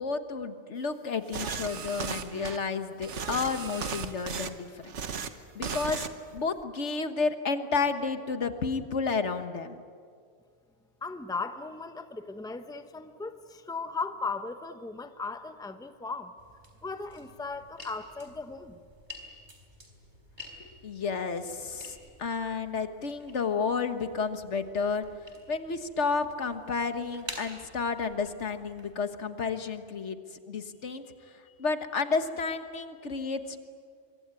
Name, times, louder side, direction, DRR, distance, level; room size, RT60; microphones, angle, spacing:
voice 1, 0.0-5.0 5.5-9.8 20.6-25.1 25.5-33.6, left 4 dB, 75° left, 9 dB, 1.7 m, -31 dB
sound 1, 1.3-2.6 3.0-4.5 4.8-5.3 5.6-6.1 6.4-6.6, right 6 dB, 80° right, 1.5 m, -35 dB
voice 2, 11.0-16.3 16.8-18.8, left 4 dB, 5° left, 9 dB, 0.9 m, -37 dB
sound 2, 16.4-28.9, left 1 dB, 40° right, 3.9 m, -50 dB
25.0 x 23.0 x 9.7 m, 2.1 s
omnidirectional pair, 1.2 m